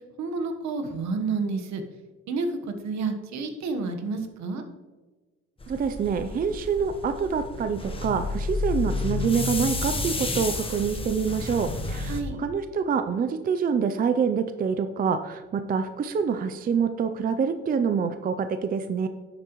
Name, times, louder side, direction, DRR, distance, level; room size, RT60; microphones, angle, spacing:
voice 1, 0.2-1.8 2.3-2.5 2.8-4.6 12.1-12.3, right 4 dB, 70° right, 6 dB, 1.3 m, -29 dB
sound 1, 5.6-12.2, left 3 dB, 20° left, 1.1 m, -31 dB
voice 2, 5.7-19.1, right 6 dB, 30° right, 9 dB, 0.5 m, -26 dB
10.5 x 7.7 x 3.1 m, 1.3 s
cardioid pair, 120°, 29 cm